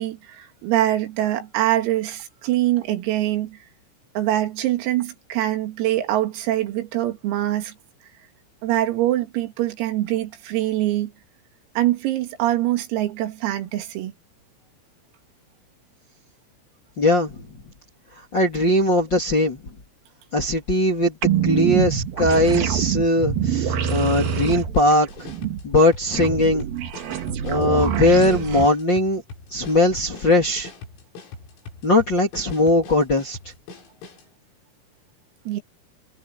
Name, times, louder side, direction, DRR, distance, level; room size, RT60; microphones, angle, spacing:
voice 1, 0.0-3.6 4.2-7.7 8.6-11.1 11.8-14.1 35.5-35.6, right 14 dB, 85° right, 5.0 m, -24 dB
voice 2, 17.0-17.3 18.3-19.6 20.3-21.1 21.4-25.1 25.6-26.7 27.4-29.2 29.5-30.7 31.8-33.4, left 1 dB, 35° left, 2.0 m, -19 dB
sound 1, 21.2-28.7, right 8 dB, 60° right, 2.7 m, -25 dB
sound 2, 23.6-34.3, left 3 dB, 85° left, 8.9 m, -42 dB
omnidirectional pair, 6.0 m